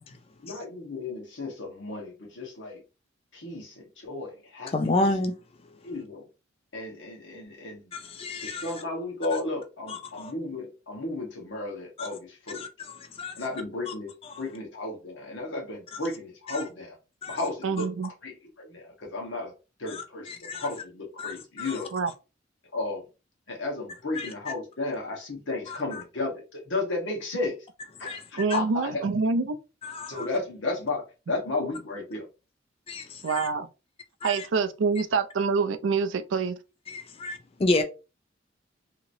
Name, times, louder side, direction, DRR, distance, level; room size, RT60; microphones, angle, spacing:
voice 1, 0.4-2.8 3.3-4.7 5.8-6.2 6.7-7.9 8.4-12.7 13.4-14.1 14.4-17.0 17.3-19.5 19.8-21.9 22.7-23.0 23.5-27.5 28.0-29.0 30.1-32.3, left 2 dB, 80° left, 1.2 m, -33 dB
voice 2, 4.7-5.3 7.9-8.7 9.9-10.3 12.0-12.1 12.5-13.3 13.9-14.0 14.3-14.4 16.5-16.6 17.2-17.4 19.9-20.7 21.2-21.7 24.2-24.3 25.7-26.0 28.0-28.2 28.5-28.6 29.8-30.3 32.9-33.5 34.2-34.5 36.9-37.8, left 2 dB, 30° left, 0.4 m, -30 dB
voice 3, 17.6-18.1 21.9-22.1 28.4-29.6 33.2-33.7 34.2-36.6, right 4 dB, 80° right, 0.4 m, -26 dB
2.9 x 2.9 x 2.6 m
head